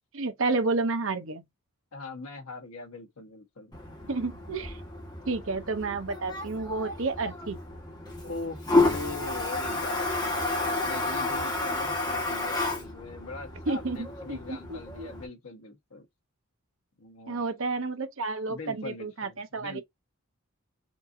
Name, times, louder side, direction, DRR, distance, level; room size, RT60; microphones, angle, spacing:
voice 1, 0.1-1.4 4.1-4.8 5.3-7.6 13.7-15.1 17.3-19.8, right 3 dB, 60° right, 0.8 m, -31 dB
voice 2, 1.9-3.8 8.2-16.0 17.0-17.4 18.5-19.8, left 3 dB, 85° left, 1.4 m, -41 dB
Toilet flush, 3.7-15.3, left 2 dB, 20° left, 1.3 m, -31 dB
4.4 x 2.7 x 2.6 m
head